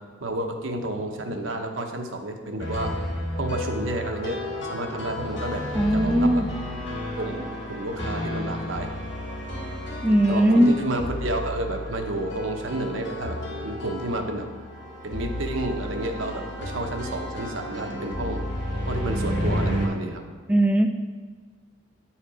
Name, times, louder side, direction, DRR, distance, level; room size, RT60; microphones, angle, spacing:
voice 1, 0.2-2.9 3.4-5.6 5.9-6.5 7.1-8.9 10.3-13.4 13.6-14.5 15.0-18.4 18.9-20.2, right 1 dB, 75° right, 3 dB, 0.9 m, -30 dB
sound 1, 2.6-19.9, left 1 dB, 60° left, 2.0 m, -32 dB
voice 2, 5.8-6.5 10.0-10.7 20.5-20.9, right 1 dB, 5° right, 4 dB, 0.3 m, -19 dB
9.2 x 4.3 x 4.9 m, 1.5 s
head